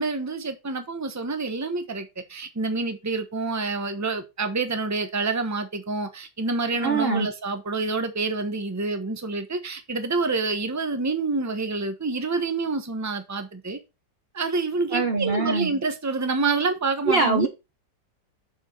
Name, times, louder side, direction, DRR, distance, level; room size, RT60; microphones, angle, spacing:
voice 1, 0.0-13.8 14.3-17.5, right 3 dB, 10° right, 0.9 m, -27 dB
voice 2, 6.8-7.3 14.9-15.7 17.1-17.5, right 3 dB, 45° right, 0.9 m, -23 dB
7.1 x 6.5 x 4.6 m
omnidirectional pair, 1.9 m